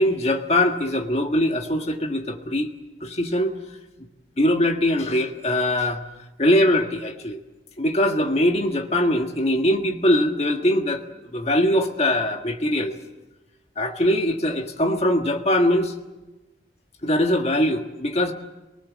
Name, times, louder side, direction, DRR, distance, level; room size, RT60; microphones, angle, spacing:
voice 1, 0.0-2.7 3.0-3.5 4.4-6.0 6.4-7.4 7.8-11.0 11.3-12.9 13.8-15.9 17.0-18.3, left 1 dB, 35° left, 3 dB, 1.7 m, -22 dB
28.0 x 19.5 x 7.5 m, 1.1 s
head